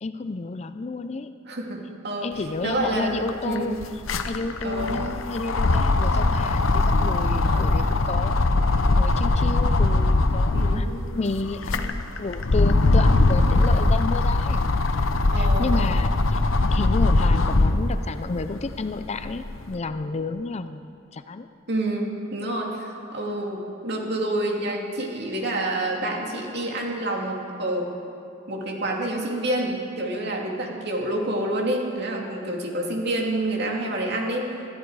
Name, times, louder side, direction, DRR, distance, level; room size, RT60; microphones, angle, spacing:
voice 1, 0.0-1.3 2.2-3.8 4.2-14.6 15.4-16.4 16.7-21.5, left 3 dB, 35° left, 10 dB, 0.5 m, -31 dB
voice 2, 1.5-3.7 4.6-5.0 7.4-7.8 10.5-10.9 15.3-15.7 21.7-27.9 28.5-34.7, right 1 dB, 55° right, 0 dB, 2.5 m, -28 dB
sound 1, 2.8-2.9 3.1-10.9 11.4-17.9 18.4-19.6, left 2 dB, 80° left, 0.8 m, -21 dB
21.5 x 14.0 x 4.8 m, 2.7 s
head